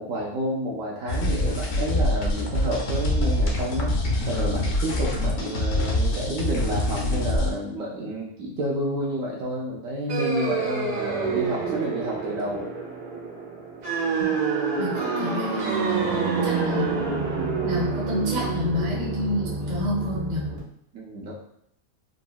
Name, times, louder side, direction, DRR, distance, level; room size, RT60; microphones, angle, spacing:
voice 1, 0.0-4.0 4.3-12.7 16.0-16.4 20.9-21.3, equal, 70° right, -3 dB, 0.9 m, -30 dB
sound 1, 1.1-7.5, left 1 dB, 65° left, 0.7 m, -25 dB
sound 2, 10.1-20.6, right 4 dB, 85° right, 1.3 m, -27 dB
voice 2, 14.8-15.6 16.4-16.9 17.6-20.4, left 1 dB, 40° right, -4 dB, 0.8 m, -29 dB
3.7 x 2.0 x 2.2 m, 0.73 s
omnidirectional pair, 1.5 m